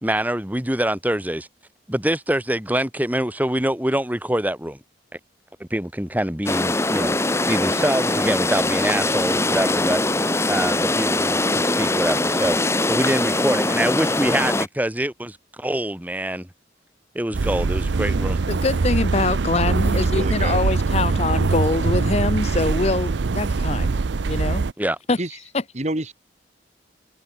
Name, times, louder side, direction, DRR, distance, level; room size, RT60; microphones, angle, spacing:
voice 1, 0.0-1.5 1.9-4.8 5.6-7.2 7.5-10.0 10.5-12.6 12.9-16.5 17.1-18.4 24.8-25.0, right 1 dB, 10° right, 1.8 m, -25 dB
sound 1, 6.5-14.7, left 2 dB, 15° left, 1.3 m, -22 dB
sound 2, 17.3-24.7, right 4 dB, 90° right, 0.6 m, -22 dB
voice 2, 18.5-23.9 24.3-24.6 25.1-25.2 25.5-25.6, left 3 dB, 35° left, 0.6 m, -24 dB
voice 3, 19.9-20.6 25.2-25.3 25.7-26.1, right 1 dB, 40° right, 2.4 m, -28 dB
head